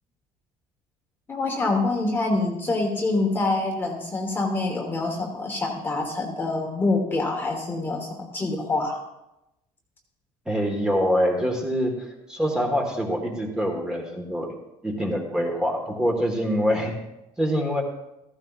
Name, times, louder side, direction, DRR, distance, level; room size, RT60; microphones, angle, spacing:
voice 1, 1.3-9.0, left 2 dB, 15° left, 1 dB, 1.1 m, -26 dB
voice 2, 10.5-14.5 14.8-17.0 17.4-17.8, equal, 5° right, 1 dB, 1.3 m, -25 dB
15.0 x 14.0 x 2.4 m, 0.91 s
cardioid pair, 175°, 13 cm